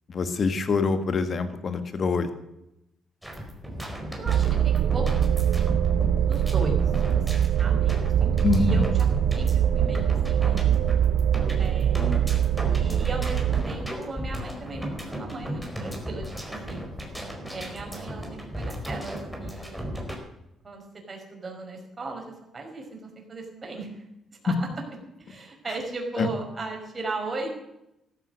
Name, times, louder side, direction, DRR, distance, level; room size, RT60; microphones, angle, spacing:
voice 1, 0.1-2.3 8.4-8.9 26.2-26.3, left 4 dB, 45° left, 9 dB, 1.9 m, -25 dB
sound 1, 3.2-20.2, equal, ahead, 4.5 m, -35 dB
voice 2, 4.1-5.3 6.1-6.8 7.1-8.3 8.6-9.1 9.3-10.8 11.6-12.2 12.7-16.9 17.5-19.9 20.6-24.1 24.4-24.7 25.2-27.5, right 2 dB, 35° right, 2 dB, 5.2 m, -37 dB
sound 2, 4.3-13.6, right 9 dB, 80° right, 0.9 m, -23 dB
14.5 x 13.5 x 6.5 m, 0.85 s
cardioid pair, 90°, 0 cm